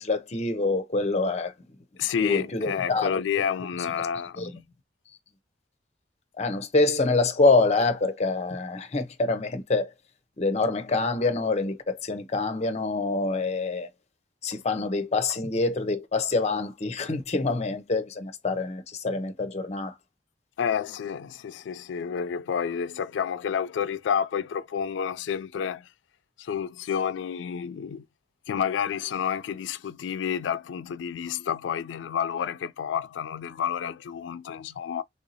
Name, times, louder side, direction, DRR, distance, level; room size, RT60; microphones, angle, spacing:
voice 1, 0.0-1.5 2.2-3.1 4.4-4.5 6.4-9.9 10.4-13.9 14.4-19.9, left 3 dB, 35° left, 0.6 m, -26 dB
voice 2, 2.0-4.5 20.6-25.8 26.4-28.0 28.5-35.0, left 7 dB, 85° left, 0.3 m, -29 dB
3.3 x 2.7 x 2.7 m
head